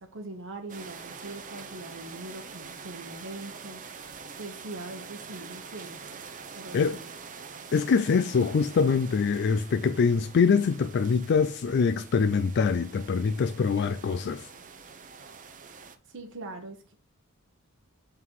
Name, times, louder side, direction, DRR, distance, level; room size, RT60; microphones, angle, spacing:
voice 1, 0.0-4.1 4.4-6.2 6.5-7.1 16.0-16.9, right 2 dB, 60° right, 1.1 m, -42 dB
sound 1, 0.7-16.0, right 5 dB, 40° right, 0.7 m, -45 dB
voice 2, 7.7-14.5, left 5 dB, 50° left, 0.4 m, -24 dB
7.9 x 3.8 x 4.6 m
head